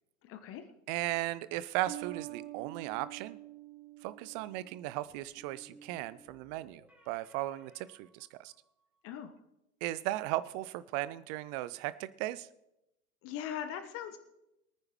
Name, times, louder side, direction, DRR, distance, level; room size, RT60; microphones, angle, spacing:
voice 1, 0.2-0.6 9.0-9.3 13.2-14.2, left 9 dB, 35° left, 8 dB, 1.3 m, -40 dB
voice 2, 0.9-3.4 4.0-8.5 9.8-12.5, right 16 dB, 30° right, 17 dB, 0.5 m, -36 dB
Bass guitar, 1.9-5.4, right 17 dB, 50° right, 1.2 m, -47 dB
sound 1, 2.3-3.2 5.1-8.8, right 3 dB, 5° right, 4.0 m, -60 dB
23.0 x 9.6 x 3.1 m, 0.90 s
figure-of-eight pair, 90°, 41 cm